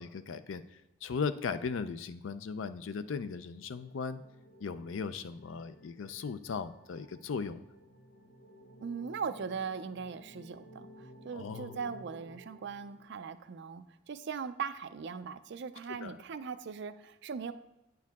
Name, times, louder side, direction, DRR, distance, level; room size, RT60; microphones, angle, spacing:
voice 1, 0.0-4.2 4.6-7.6 11.3-11.8 16.0-16.2, left 5 dB, 80° left, 13 dB, 0.4 m, -37 dB
sound 1, 3.1-13.6, right 1 dB, 60° left, 1.0 m, -55 dB
voice 2, 8.8-17.5, right 6 dB, 65° right, 11 dB, 0.4 m, -40 dB
9.0 x 4.7 x 3.5 m, 0.92 s
head